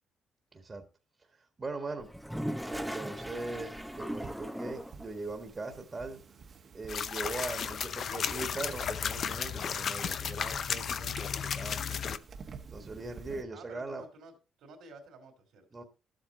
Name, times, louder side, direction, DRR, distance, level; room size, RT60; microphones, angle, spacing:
voice 1, 0.5-0.8 1.4-2.1 2.7-6.2 6.7-12.2 12.7-14.0 15.7-15.8, right 3 dB, 30° right, 1.6 m, -40 dB
Toilet flush, 2.0-5.1, equal, ahead, 0.7 m, -38 dB
sound 1, 2.7-13.4, right 5 dB, 50° right, 1.3 m, -51 dB
sound 2, 6.9-12.2, left 7 dB, 55° left, 0.6 m, -34 dB
voice 2, 12.9-15.7, right 3 dB, 80° right, 3.1 m, -53 dB
12.0 x 8.0 x 3.9 m
cardioid pair, 90°, 0 cm